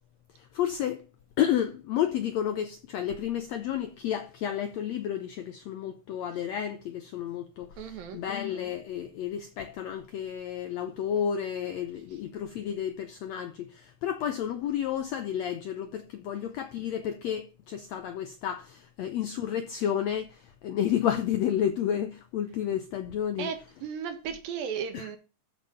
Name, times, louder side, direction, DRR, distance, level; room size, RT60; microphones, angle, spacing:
voice 1, 0.4-1.0 1.4-23.5 24.9-25.1, left 10 dB, 80° left, 1.5 m, -31 dB
voice 2, 7.8-8.2 23.4-25.2, right 7 dB, 80° right, 3.2 m, -35 dB
13.5 x 5.4 x 5.6 m
omnidirectional pair, 4.1 m